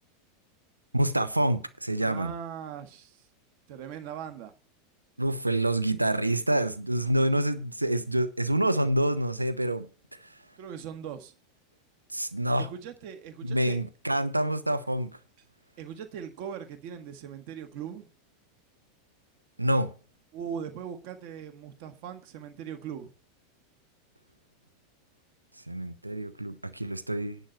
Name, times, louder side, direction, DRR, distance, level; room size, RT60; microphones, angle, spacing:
voice 1, 0.9-2.3 5.2-9.9 10.2-10.3 12.1-12.7 13.4-15.2 19.6-19.9 25.7-27.4, right 1 dB, 85° right, 0.9 m, -27 dB
voice 2, 2.0-3.3 3.7-4.5 10.6-11.3 12.6-13.8 15.8-18.1 20.3-23.1, right 8 dB, 50° right, 1.6 m, -40 dB
10.5 x 5.9 x 8.3 m
figure-of-eight pair, 85°, 0 cm